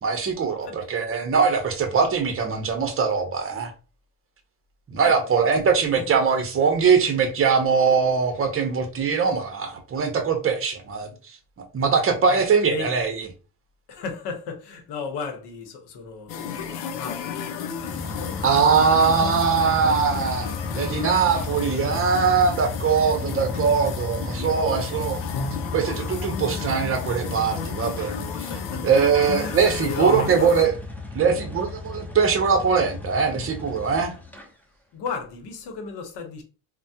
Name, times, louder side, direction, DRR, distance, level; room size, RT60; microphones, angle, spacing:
voice 1, 0.0-3.7 4.9-11.1 11.7-13.3 18.4-25.2 25.7-28.5 28.8-30.7 31.1-34.1, right 5 dB, 30° right, 0.7 m, -22 dB
voice 2, 5.0-6.1 12.3-12.9 13.9-18.7 27.8-28.0 28.2-28.9 29.4-30.7 34.9-36.4, left 5 dB, 65° left, 1.0 m, -36 dB
sound 1, 16.3-30.7, left 6 dB, 90° left, 0.7 m, -33 dB
sound 2, 17.8-34.5, left 3 dB, 5° left, 0.5 m, -34 dB
3.3 x 2.2 x 2.7 m
cardioid pair, 115°, 45 cm